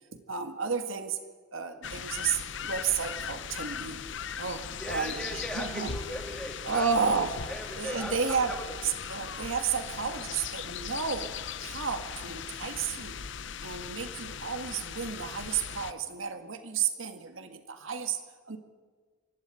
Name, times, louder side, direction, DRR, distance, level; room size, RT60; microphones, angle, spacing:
voice 1, 0.1-1.2 1.5-4.0 4.4-5.9 6.6-7.4 7.8-8.5 8.8-11.3 11.6-13.2 13.6-18.2 18.5-18.6, right 6 dB, 75° right, 7 dB, 1.8 m, -32 dB
sound 1, 1.8-15.9, left 7 dB, 60° left, 0.7 m, -39 dB
voice 2, 4.7-6.9 7.2-8.7, equal, 5° left, 1 dB, 2.7 m, -39 dB
24.5 x 12.5 x 9.1 m, 1.5 s
head